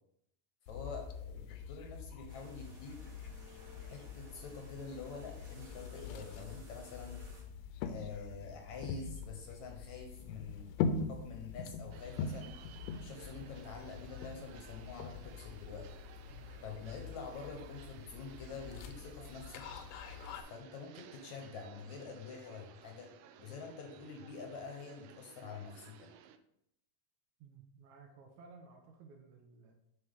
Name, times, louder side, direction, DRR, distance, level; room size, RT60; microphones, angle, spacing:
sound 1, 0.7-20.4, left 5 dB, 85° left, 2.2 m, -43 dB
voice 1, 0.7-3.0 3.9-7.2 7.8-10.7 11.1-12.5 13.0-15.9 16.6-19.6 20.4-23.1 23.4-26.1, left 5 dB, 70° left, 3 dB, 1.9 m, -47 dB
sound 2, 2.3-7.4, equal, 35° right, 2.4 m, -57 dB
sound 3, 11.9-26.4, right 9 dB, 90° right, 2.3 m, -57 dB
voice 2, 16.3-16.6 27.4-29.7, right 5 dB, 70° right, 3 dB, 1.9 m, -57 dB
7.7 x 5.6 x 3.5 m, 0.75 s
omnidirectional pair, 3.9 m